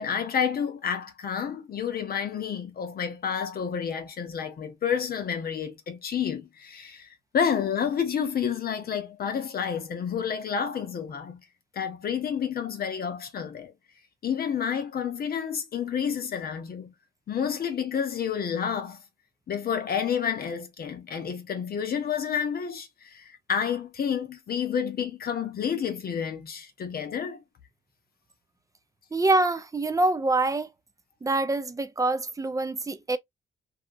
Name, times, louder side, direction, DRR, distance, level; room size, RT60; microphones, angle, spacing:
voice 1, 0.0-11.4 11.7-13.7 14.2-16.9 17.3-19.0 19.5-27.4, left 7 dB, 50° left, 0.8 m, -30 dB
voice 2, 29.1-30.7 31.2-33.2, right 2 dB, 15° right, 0.5 m, -25 dB
2.8 x 2.4 x 2.5 m
cardioid pair, 90°, 20 cm